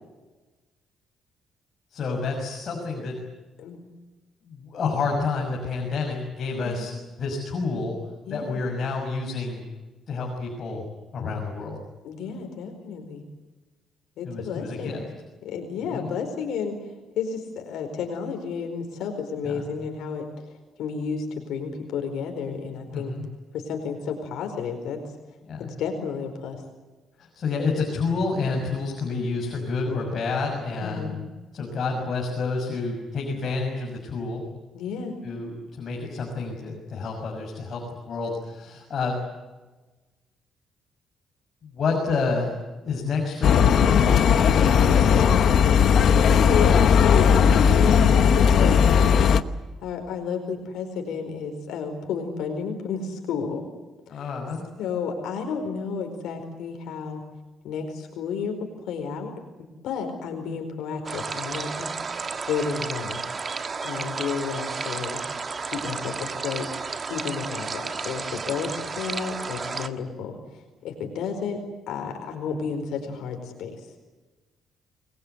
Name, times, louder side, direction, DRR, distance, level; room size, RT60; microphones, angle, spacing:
voice 1, 1.9-3.2 4.4-6.9 7.2-8.0 8.3-9.6 10.1-10.8 11.1-11.8 14.2-15.0 15.9-16.1 19.4-19.6 22.9-23.3 25.4-25.7 27.2-31.2 31.5-34.4 35.2-39.2 41.6-42.6 42.8-45.5 54.1-54.6, left 4 dB, 45° left, -1 dB, 6.5 m, -29 dB
voice 2, 8.3-8.6 12.0-13.2 14.2-15.0 15.4-16.8 17.1-20.3 20.8-23.1 23.5-25.0 25.6-26.6 30.8-31.1 34.7-35.2 46.1-49.2 49.5-53.6 54.1-54.3 54.8-57.2 57.6-59.3 59.8-62.0 62.5-63.2 63.8-65.4 65.7-66.7 67.1-71.6 71.9-73.9, left 6 dB, 90° left, 4 dB, 4.7 m, -31 dB
sound 1, 43.4-49.4, left 7 dB, 60° left, 1.0 m, -17 dB
sound 2, 61.0-69.9, right 5 dB, 30° right, 1.5 m, -32 dB
29.0 x 22.0 x 8.2 m, 1.2 s
cardioid pair, 145°, 0 cm